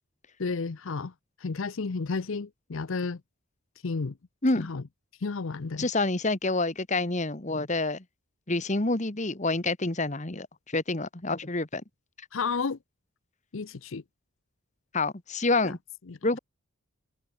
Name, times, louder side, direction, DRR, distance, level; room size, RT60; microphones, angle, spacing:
voice 1, 0.4-1.1 1.4-3.2 3.8-4.1 4.6-4.8 5.2-5.9 12.3-12.8 13.5-14.0 15.6-15.7 16.1-16.2, left 4 dB, 65° left, 0.6 m, -32 dB
voice 2, 5.8-8.0 8.5-10.5 10.7-11.8 14.9-15.8 16.2-16.4, left 2 dB, 35° left, 1.5 m, -27 dB
head